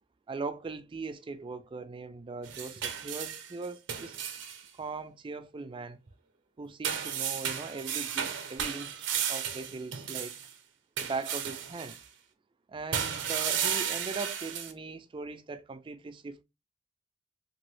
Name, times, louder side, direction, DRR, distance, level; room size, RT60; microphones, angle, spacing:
voice 1, 0.3-4.2 4.8-6.0 6.6-10.3 11.0-12.0 12.7-16.4, right 4 dB, 25° right, 0.3 m, -40 dB
sound 1, 2.4-4.6 6.8-10.5 11.0-12.0 12.9-14.7, right 8 dB, 70° right, 0.6 m, -34 dB
3.0 x 2.6 x 3.0 m
head